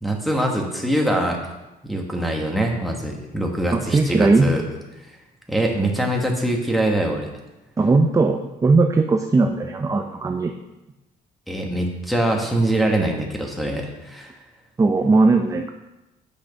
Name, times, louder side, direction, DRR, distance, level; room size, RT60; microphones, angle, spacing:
voice 1, 0.0-1.4 1.8-4.6 5.5-7.3 11.5-14.3, right 1 dB, ahead, 0 dB, 1.6 m, -23 dB
voice 2, 3.7-4.5 7.8-10.5 14.8-15.7, right 3 dB, 20° right, 5 dB, 0.5 m, -18 dB
8.6 x 6.2 x 5.4 m, 1.0 s
cardioid pair, 130°, 17 cm